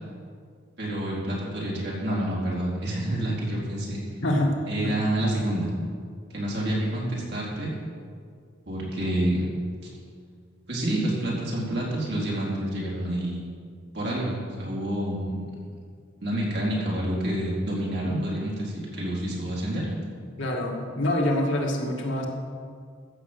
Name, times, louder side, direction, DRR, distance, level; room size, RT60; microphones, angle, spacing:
voice 1, 0.8-4.0 4.7-5.7 6.3-7.7 8.7-9.5 9.8-9.9 10.7-13.5 13.9-15.5 16.2-19.9, right 1 dB, 65° right, -5 dB, 4.1 m, -28 dB
voice 2, 4.2-4.6 20.4-22.2, left 1 dB, 80° left, -1 dB, 2.0 m, -25 dB
14.0 x 6.6 x 8.0 m, 2.1 s
head